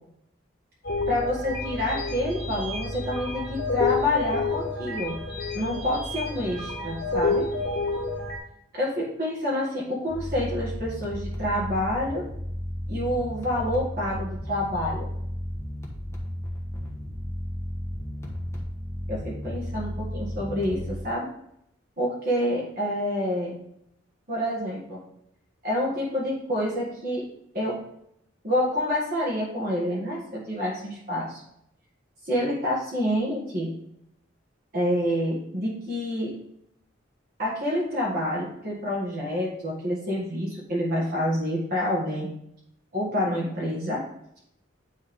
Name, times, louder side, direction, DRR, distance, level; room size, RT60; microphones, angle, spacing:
sound 1, 0.8-8.4, left 3 dB, 55° left, 1.8 m, -29 dB
voice 1, 1.1-5.1 5.5-7.5 8.7-12.2 12.9-15.1 19.1-21.3 22.0-23.6 24.3-25.0 25.6-27.2 27.5-27.7 28.4-31.4 32.2-33.7 34.7-36.3 37.4-42.3 42.9-44.0, left 1 dB, 45° right, -6 dB, 1.6 m, -28 dB
sound 2, 10.1-21.1, equal, 15° left, 1.2 m, -34 dB
9.6 x 3.5 x 3.6 m, 0.76 s
head